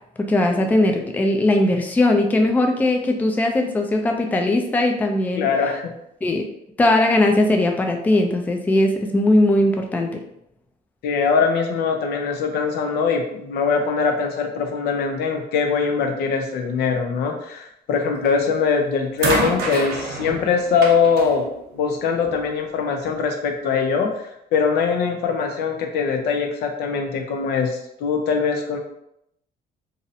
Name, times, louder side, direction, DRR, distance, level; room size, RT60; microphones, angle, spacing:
voice 1, 0.3-5.5 6.2-6.4 6.8-10.2, left 1 dB, 10° left, 3 dB, 0.3 m, -19 dB
voice 2, 5.4-5.9 11.0-21.5 21.7-28.8, left 5 dB, 75° left, 3 dB, 0.5 m, -22 dB
sound 1, 18.3-18.6 19.2-22.5 23.5-23.6, right 2 dB, 65° right, 0.6 m, -28 dB
2.6 x 2.0 x 2.6 m, 0.77 s
cardioid pair, 110°, 17 cm